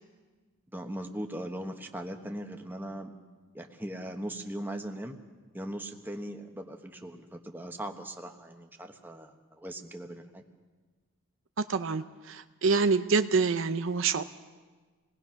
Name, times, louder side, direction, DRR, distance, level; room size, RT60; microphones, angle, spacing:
voice 1, 0.7-3.1 3.5-5.2 5.5-10.4, right 1 dB, 10° right, 4 dB, 1.2 m, -39 dB
voice 2, 11.6-14.2, right 4 dB, 65° right, 10 dB, 0.7 m, -26 dB
28.0 x 19.5 x 5.8 m, 1.4 s
head